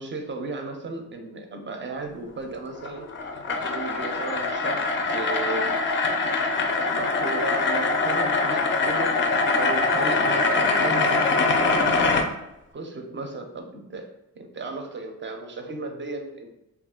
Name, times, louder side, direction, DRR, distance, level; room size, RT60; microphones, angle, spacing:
voice 1, 0.0-3.1 3.6-5.8 6.9-9.2 9.5-12.1 12.7-14.1 14.4-16.6, right 3 dB, 35° right, 4 dB, 0.4 m, -34 dB
sound 1, 2.8-12.2, left 3 dB, 35° left, 0.4 m, -23 dB
2.7 x 2.4 x 3.5 m, 0.91 s
wide cardioid pair, 150°, 35 cm